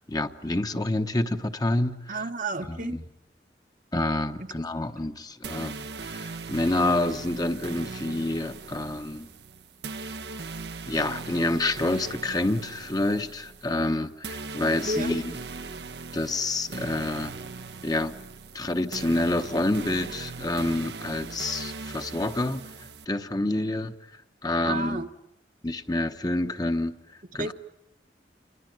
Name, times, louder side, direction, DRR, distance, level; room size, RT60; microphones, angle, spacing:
voice 1, 0.0-2.3 2.6-3.0 3.9-9.3 10.9-15.3 16.1-17.4 17.8-18.1 18.5-22.6 23.1-23.9 24.4-25.0 25.6-26.9 27.3-27.5, left 2 dB, 20° left, 1.1 m, -28 dB
voice 2, 2.1-3.0 14.9-15.2 24.6-25.1 27.4-27.5, right 2 dB, 50° right, 1.2 m, -31 dB
sound 1, 5.4-23.0, right 4 dB, 75° right, 1.0 m, -39 dB
28.5 x 22.5 x 9.3 m
head